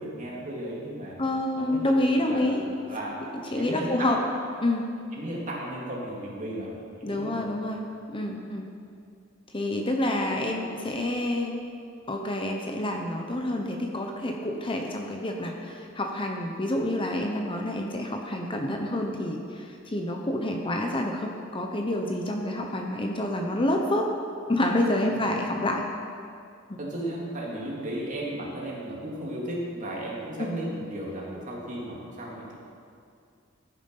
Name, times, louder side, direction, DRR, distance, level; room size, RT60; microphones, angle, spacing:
voice 1, 0.0-1.2 1.5-3.2 3.5-4.2 5.1-7.5 25.0-25.6 26.8-32.5, right 1 dB, 40° right, -4 dB, 3.0 m, -35 dB
voice 2, 1.2-2.6 3.3-4.2 4.6-4.8 7.0-7.8 8.1-8.7 9.5-11.6 12.1-24.1 24.5-25.8 26.7-26.8 30.4-30.5, left 1 dB, 25° left, 2 dB, 1.0 m, -28 dB
16.0 x 9.5 x 5.6 m, 2.4 s
head